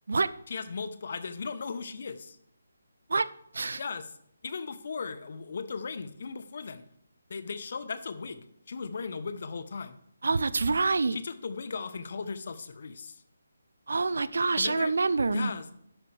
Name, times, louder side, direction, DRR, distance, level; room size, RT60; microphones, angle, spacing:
voice 1, 0.5-2.4 3.8-4.1 4.4-6.8 7.3-10.0 11.1-13.2 14.5-14.9 15.3-15.7, left 5 dB, 50° left, 12 dB, 1.0 m, -37 dB
voice 2, 10.2-11.2 13.9-15.5, right 3 dB, 65° right, 16 dB, 0.6 m, -26 dB
12.5 x 10.5 x 3.4 m, 0.72 s
figure-of-eight pair, 150°, 0 cm